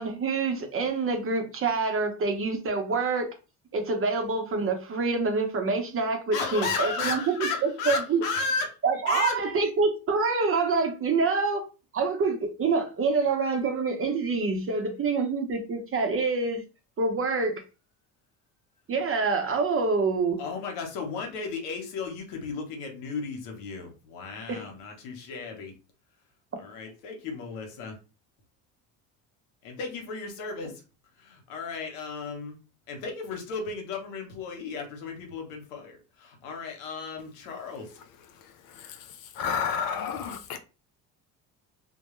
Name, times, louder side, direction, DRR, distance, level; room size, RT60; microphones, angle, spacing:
voice 1, 0.0-3.3 3.7-8.2 8.8-11.6 11.9-16.6 17.0-17.6 18.9-20.4 24.5-24.6, right 4 dB, 35° right, 0.7 m, -26 dB
voice 2, 6.3-8.8 9.1-9.4 20.4-25.7 26.6-28.0 29.6-30.8 31.2-32.6 32.9-38.0, left 4 dB, 85° left, 0.9 m, -34 dB
voice 3, 38.7-39.0 39.4-40.6, left 7 dB, 60° left, 0.5 m, -30 dB
2.2 x 2.1 x 3.0 m
supercardioid pair, 85°, 39 cm